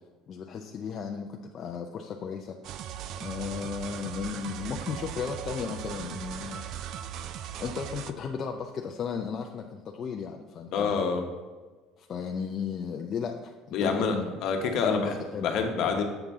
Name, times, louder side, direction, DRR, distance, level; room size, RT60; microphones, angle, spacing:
voice 1, 0.3-2.6 3.2-6.6 7.6-11.0 12.0-13.5 13.8-14.4 14.8-15.5, left 6 dB, 30° left, 2 dB, 0.4 m, -35 dB
sound 1, 2.6-8.1, right 10 dB, 50° right, 0.3 m, -38 dB
voice 2, 10.7-11.2 13.7-14.1 14.4-16.0, left 5 dB, 50° left, 3 dB, 1.0 m, -27 dB
7.8 x 5.7 x 3.5 m, 1.3 s
cardioid pair, 160°, 0 cm